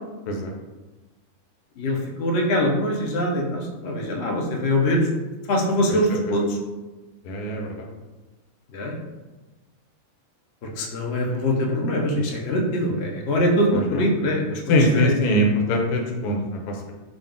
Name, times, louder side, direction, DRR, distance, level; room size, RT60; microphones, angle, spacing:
voice 1, 1.8-5.0 5.5-6.6 8.7-8.9 10.8-15.2, equal, 55° left, -1 dB, 0.8 m, -23 dB
voice 2, 7.2-7.9 13.7-14.0 14.7-16.9, left 1 dB, 90° left, 1 dB, 1.2 m, -22 dB
3.8 x 2.4 x 3.6 m, 1.2 s
omnidirectional pair, 1.6 m